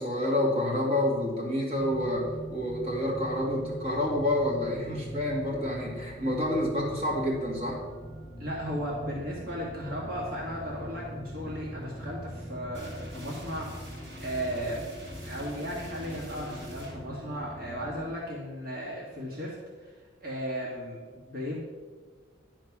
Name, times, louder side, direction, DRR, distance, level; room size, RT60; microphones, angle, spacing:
voice 1, 0.0-7.8, left 1 dB, 30° right, -3 dB, 2.2 m, -28 dB
sound 1, 1.8-18.1, equal, 15° left, 0.7 m, -42 dB
voice 2, 8.4-14.9 15.2-19.9 20.2-21.6, equal, 45° right, -5 dB, 1.9 m, -36 dB
sound 2, 12.7-18.4, equal, 65° right, 3.2 m, -48 dB
11.0 x 4.6 x 6.0 m, 1.5 s
head